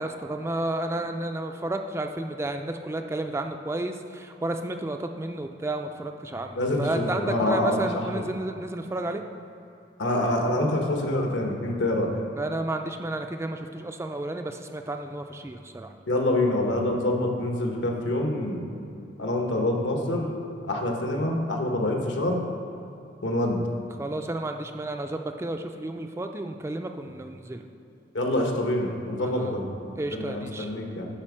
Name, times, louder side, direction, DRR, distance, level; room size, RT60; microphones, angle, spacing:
voice 1, 0.0-9.2 12.4-15.9 24.0-27.6 29.2-29.6 30.0-30.7, right 2 dB, 15° right, 5 dB, 0.3 m, -32 dB
voice 2, 6.5-7.8 8.1-8.2 10.0-12.1 16.1-18.6 19.2-20.3 20.7-22.4 23.2-23.6 28.1-29.7 30.1-31.1, left 1 dB, 85° left, 1 dB, 1.2 m, -26 dB
8.8 x 5.1 x 6.1 m, 2.8 s
head